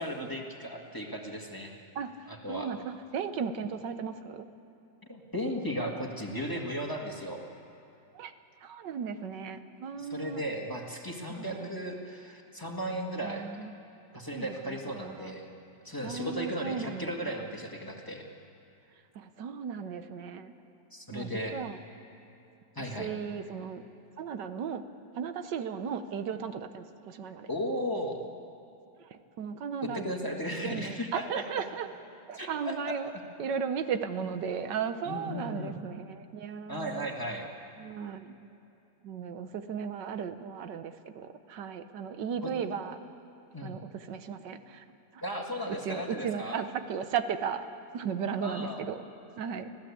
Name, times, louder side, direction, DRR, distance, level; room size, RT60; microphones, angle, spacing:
voice 1, 0.0-1.7 2.3-2.7 5.1-7.4 10.0-13.4 14.1-15.5 15.8-18.3 20.9-21.6 22.7-23.1 27.5-28.2 30.0-31.4 32.3-32.8 35.1-35.8 36.7-37.5 42.4-42.5 43.5-43.8 45.2-46.6 48.4-48.8, equal, 10° left, 0 dB, 1.8 m, -35 dB
voice 2, 1.9-4.5 8.1-8.3 8.6-10.4 11.4-11.7 13.2-13.7 14.3-15.3 16.0-17.4 19.1-20.5 21.1-21.8 23.0-23.8 24.2-24.9 25.1-27.5 29.0-30.1 30.6-31.9 32.3-33.1 33.4-37.1 37.8-38.3 39.0-43.0 43.6-44.8 45.1-45.2 45.7-47.6 47.9-49.0 49.4-49.7, right 7 dB, 80° right, 10 dB, 1.6 m, -36 dB
25.5 x 16.0 x 8.5 m, 2.8 s
omnidirectional pair, 1.9 m